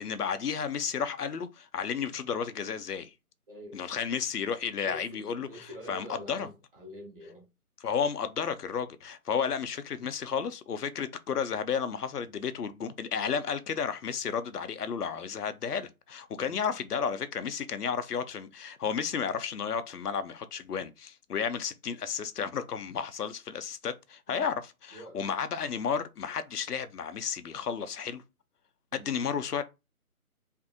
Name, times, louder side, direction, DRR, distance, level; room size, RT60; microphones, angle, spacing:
voice 1, 0.0-3.1 3.7-6.5 7.8-28.2 28.9-29.6, left 7 dB, 80° left, 0.5 m, -32 dB
voice 2, 3.5-3.9 4.8-7.5 16.4-16.6 24.3-24.5 24.9-25.4 28.9-29.2, equal, 35° right, 1.0 m, -46 dB
2.6 x 2.4 x 2.5 m
figure-of-eight pair, 155°, 45 cm